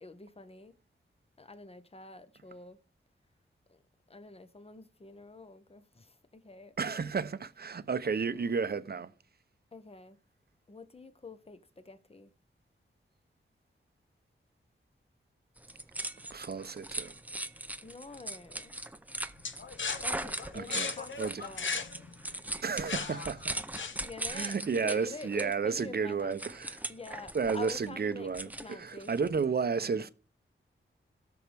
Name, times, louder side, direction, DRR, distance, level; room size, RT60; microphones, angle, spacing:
voice 1, 0.0-0.8 1.4-2.8 3.7-3.8 4.1-7.1 9.7-10.2 10.7-12.3 17.8-18.7 20.0-21.8 24.0-24.5 24.8-26.4 26.9-28.3 28.6-29.5 29.8-30.1, left 3 dB, 30° left, 1.0 m, -47 dB
voice 2, 6.8-9.1 16.3-17.1 20.5-21.5 22.6-23.6 24.3-26.8 27.3-30.1, right 5 dB, 50° right, 0.7 m, -32 dB
sound 1, 15.6-29.4, right 1 dB, 5° right, 0.7 m, -40 dB
sound 2, 19.4-24.3, left 5 dB, 65° left, 0.9 m, -38 dB
17.5 x 6.4 x 3.5 m
wide cardioid pair, 70°, 21 cm